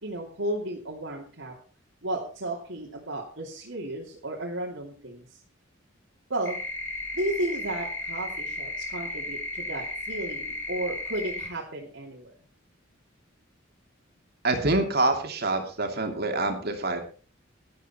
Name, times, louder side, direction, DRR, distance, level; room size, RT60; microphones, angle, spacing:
voice 1, 0.0-1.5 2.0-5.4 6.3-6.6 7.1-12.3, right 1 dB, 70° right, -4 dB, 3.0 m, -33 dB
sound 1, 6.4-11.5, left 2 dB, 10° left, 3.8 m, -34 dB
voice 2, 14.4-17.0, right 2 dB, 50° right, 4 dB, 2.8 m, -26 dB
12.0 x 12.0 x 4.4 m, 0.38 s
head